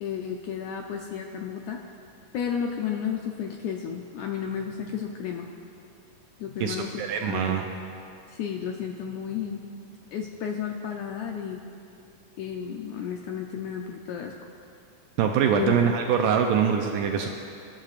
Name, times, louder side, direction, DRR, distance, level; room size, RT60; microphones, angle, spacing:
voice 1, 0.0-1.8 2.3-5.5 6.4-7.0 7.3-7.6 8.3-9.6 10.1-11.6 12.4-14.3 15.5-15.8, left 8 dB, 85° left, 2 dB, 1.7 m, -32 dB
voice 2, 6.6-7.6 15.2-17.3, right 7 dB, 80° right, 3 dB, 2.0 m, -24 dB
24.0 x 11.5 x 2.5 m, 2.5 s
omnidirectional pair, 4.0 m